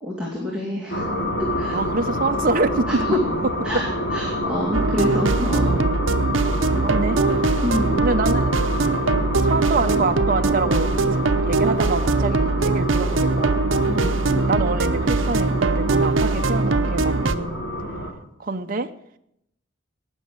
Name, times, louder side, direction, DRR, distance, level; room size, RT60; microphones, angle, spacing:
voice 1, 0.0-1.1 1.4-1.8 2.9-3.2 3.6-5.7 7.6-8.1 13.9-14.2, left 1 dB, 5° right, -4 dB, 2.4 m, -27 dB
sound 1, 0.9-18.1, equal, 85° left, 3.4 m, -28 dB
voice 2, 1.7-3.0 3.7-3.8 5.7-6.1 6.8-7.2 8.0-8.6 9.4-10.9 11.4-13.6 14.5-17.6 18.4-18.9, right 3 dB, 45° right, 6 dB, 0.8 m, -25 dB
sound 2, 4.7-17.4, right 3 dB, 80° right, 0.8 m, -21 dB
18.0 x 6.3 x 8.1 m, 0.78 s
head